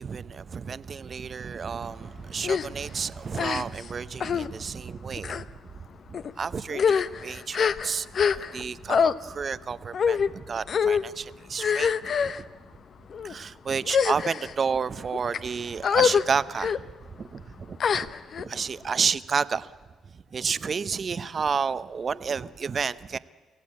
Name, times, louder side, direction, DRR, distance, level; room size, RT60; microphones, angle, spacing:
voice 1, 0.0-5.4 6.1-12.5 13.2-18.1 18.4-19.7 20.1-23.2, right 6 dB, 45° right, 0.7 m, -31 dB
sound 1, 2.4-2.7 3.3-3.9 4.2-4.5 5.2-5.4 6.1-6.3 6.7-8.6 8.9-9.1 9.9-10.3 10.7-11.0 11.6-12.4 13.1-13.3 13.8-14.5 15.1-15.4 15.8-16.2 16.6-16.8 17.8-18.4, left 6 dB, 55° left, 0.7 m, -24 dB
24.5 x 16.0 x 8.6 m
cardioid pair, 90°, 0 cm